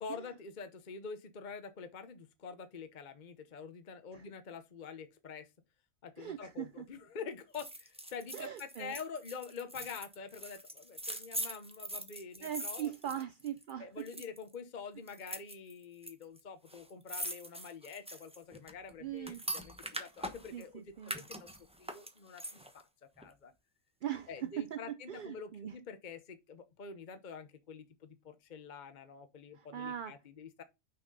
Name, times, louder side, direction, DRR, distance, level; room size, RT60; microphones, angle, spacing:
voice 1, 0.0-5.5 6.0-12.9 13.8-21.5 21.8-22.8 23.2-23.5 24.3-30.6, left 5 dB, 40° left, 1.0 m, -46 dB
voice 2, 6.2-6.8 8.3-9.0 12.4-14.1 19.0-19.4 20.5-21.2 24.0-25.7 29.5-30.1, right 10 dB, 65° right, 0.5 m, -40 dB
sound 1, 7.5-13.7 14.0-14.5 15.1-16.1 16.4-16.5 16.7-20.7 21.0-22.8 23.2-23.3, right 1 dB, 5° right, 0.9 m, -42 dB
6.1 x 5.8 x 5.4 m
omnidirectional pair, 1.4 m